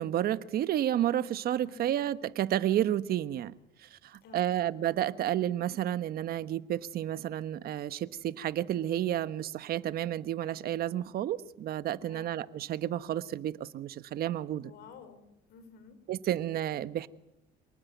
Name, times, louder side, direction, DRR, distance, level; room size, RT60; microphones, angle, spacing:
voice 1, 0.0-3.5 3.8-14.7 16.1-17.1, right 12 dB, 65° right, 1.3 m, -31 dB
voice 2, 1.6-2.0 4.2-4.5 12.1-12.3 14.6-16.0, left 5 dB, 75° left, 4.5 m, -52 dB
27.5 x 19.0 x 9.4 m
cardioid pair, 110°, 17 cm